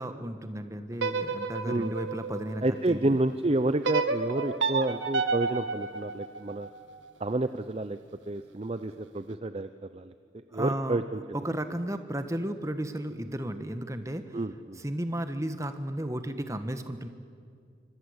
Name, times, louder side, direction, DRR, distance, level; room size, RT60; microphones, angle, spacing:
voice 1, 0.0-3.2 10.5-11.0 11.3-14.4 14.8-17.1, right 1 dB, 15° right, 9 dB, 1.3 m, -34 dB
sound 1, 0.9-3.1 3.8-7.0, right 4 dB, 80° right, 1.4 m, -31 dB
voice 2, 2.6-6.7 7.2-8.0 8.3-10.1 10.5-11.2 14.3-14.8, right 2 dB, 30° right, 11 dB, 0.6 m, -29 dB
25.5 x 24.5 x 8.1 m, 2.3 s
head